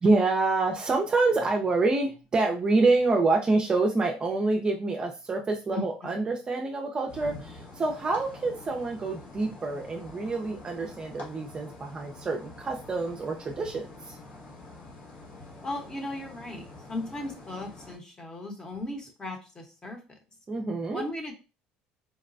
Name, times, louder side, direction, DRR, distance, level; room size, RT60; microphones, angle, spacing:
voice 1, 0.0-14.2 20.5-21.0, right 3 dB, 25° right, 2 dB, 0.5 m, -27 dB
voice 2, 5.7-6.2 15.6-20.2 20.9-21.3, left 1 dB, 20° left, 3 dB, 0.9 m, -37 dB
sound 1, 7.1-18.0, left 2 dB, 65° left, 1.4 m, -46 dB
4.0 x 2.1 x 2.5 m, 0.30 s
cardioid pair, 115°, 3 cm